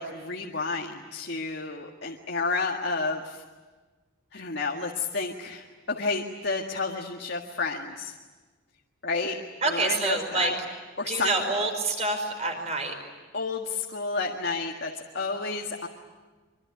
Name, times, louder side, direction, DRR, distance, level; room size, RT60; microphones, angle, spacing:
voice 1, 0.0-3.4 4.3-8.1 9.0-9.4 9.6-10.6 11.0-11.4 13.3-15.9, left 3 dB, 55° left, 0 dB, 1.9 m, -31 dB
voice 2, 9.6-10.5 11.1-12.9, right 3 dB, 30° right, 4 dB, 5.0 m, -27 dB
25.0 x 24.5 x 9.6 m, 1.3 s
head